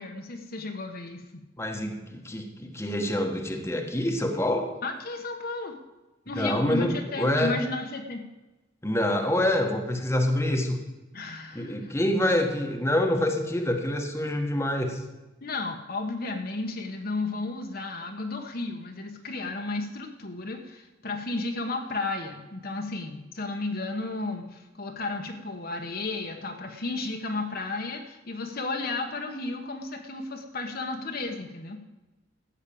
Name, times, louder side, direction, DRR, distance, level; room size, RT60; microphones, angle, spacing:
voice 1, 0.0-1.4 4.8-5.8 6.3-8.3 11.1-11.9 15.4-31.8, left 3 dB, 55° left, 4 dB, 1.2 m, -33 dB
voice 2, 1.6-4.7 6.4-7.5 8.8-10.8 11.5-15.0, left 1 dB, 15° left, 3 dB, 1.3 m, -26 dB
13.5 x 6.6 x 8.6 m, 1.1 s
head